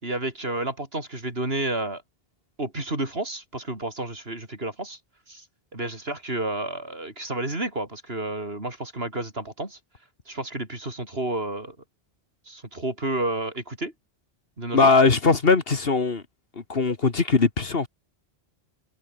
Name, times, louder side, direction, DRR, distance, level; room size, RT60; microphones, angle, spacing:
voice 1, 0.0-2.0 2.6-5.0 5.3-5.4 5.7-9.8 10.3-11.8 12.5-13.9 14.6-14.9, right 2 dB, 65° right, 5.3 m, -30 dB
voice 2, 14.7-16.2 16.7-17.9, left 4 dB, 60° left, 1.9 m, -20 dB
omnidirectional pair, 1.1 m